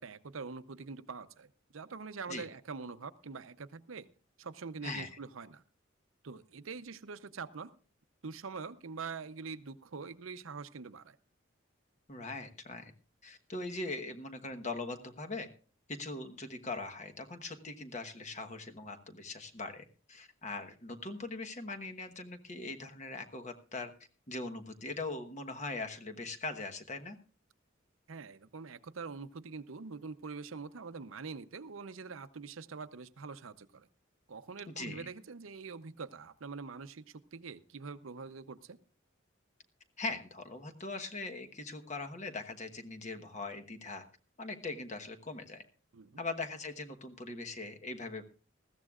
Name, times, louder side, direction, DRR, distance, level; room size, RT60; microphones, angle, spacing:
voice 1, 0.0-4.1 4.4-5.6 6.2-7.7 8.2-11.2 28.1-33.9 34.3-38.8 45.9-46.2, right 4 dB, 85° right, 13 dB, 0.7 m, -44 dB
voice 2, 12.1-12.9 13.2-15.5 16.0-23.9 24.3-27.2 34.7-35.1 40.0-44.0 44.4-45.6 46.2-48.2, left 3 dB, 35° left, 6 dB, 1.2 m, -41 dB
20.0 x 14.5 x 2.4 m, 0.38 s
head